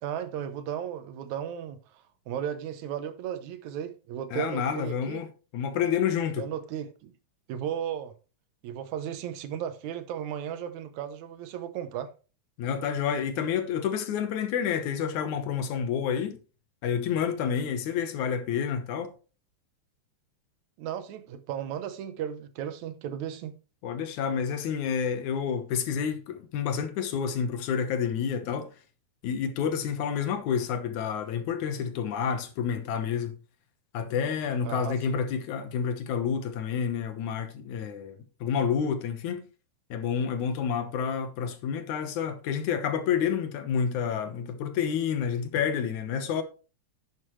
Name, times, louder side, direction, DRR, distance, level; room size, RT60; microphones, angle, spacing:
voice 1, 0.0-1.8 2.3-5.3 6.4-7.1 7.5-8.1 8.6-12.1 20.8-23.5 34.7-35.2, right 9 dB, 80° right, 2.3 m, -35 dB
voice 2, 4.3-5.3 5.5-6.5 12.6-16.4 16.8-19.1 23.8-28.7 29.2-33.3 33.9-39.4 39.9-46.4, left 7 dB, 80° left, 2.6 m, -29 dB
11.0 x 8.2 x 3.2 m
omnidirectional pair, 3.3 m